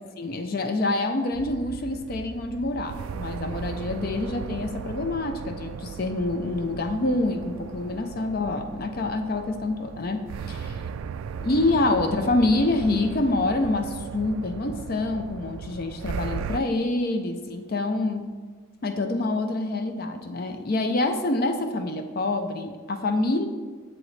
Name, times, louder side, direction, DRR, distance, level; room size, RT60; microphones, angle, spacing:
voice 1, 0.2-10.8 11.4-18.3 18.8-23.5, left 2 dB, 45° left, 7 dB, 0.5 m, -26 dB
sound 1, 1.3-16.6, right 6 dB, 85° right, 0.3 m, -37 dB
7.7 x 7.3 x 3.2 m, 1.5 s
head